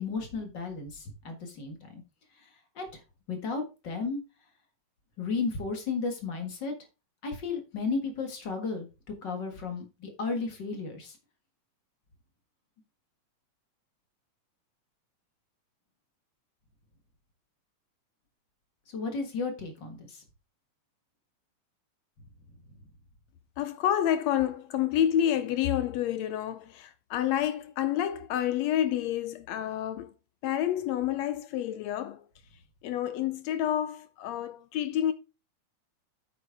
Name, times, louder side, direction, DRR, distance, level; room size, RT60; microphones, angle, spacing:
voice 1, 0.0-2.0 2.4-2.5 2.8-3.0 3.3-4.2 5.2-6.7 7.2-8.9 9.2-11.2 18.9-20.2, left 4 dB, 45° left, 1.9 m, -34 dB
voice 2, 23.6-30.1 30.4-32.2 32.8-35.1, left 11 dB, 75° left, 1.7 m, -29 dB
9.1 x 7.8 x 3.5 m
omnidirectional pair, 3.4 m